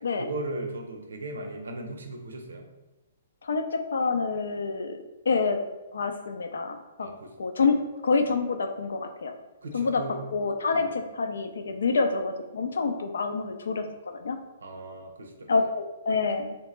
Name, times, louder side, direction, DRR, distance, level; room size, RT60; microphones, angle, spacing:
voice 1, 0.2-2.7 7.0-7.3 9.6-10.2 10.7-10.9 14.6-15.5, right 2 dB, 80° right, 4 dB, 0.6 m, -37 dB
voice 2, 3.4-5.6 5.9-7.1 7.4-7.8 8.0-9.3 9.7-10.0 10.3-13.8 14.1-14.4 15.5-16.6, left 4 dB, 75° left, 7 dB, 0.4 m, -27 dB
3.3 x 2.8 x 3.2 m, 1.1 s
hypercardioid pair, 130°, 0 cm